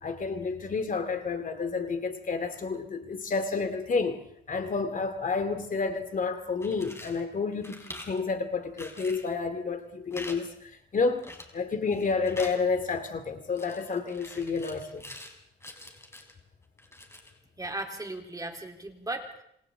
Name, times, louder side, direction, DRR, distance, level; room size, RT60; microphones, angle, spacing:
voice 1, 0.0-4.2 4.5-11.2 11.5-15.0, left 4 dB, 40° left, 2.5 m, -30 dB
sound 1, 6.5-7.2 7.6-8.2 8.8-9.3 10.1-10.4 10.6-10.7 11.2-11.6 11.9-12.6 13.6-15.3 15.6-16.3 16.8-17.4, left 1 dB, 15° left, 5.1 m, -45 dB
voice 2, 17.6-19.4, right 2 dB, 20° right, 3.9 m, -36 dB
27.5 x 26.5 x 3.9 m
cardioid pair, 90°, 20 cm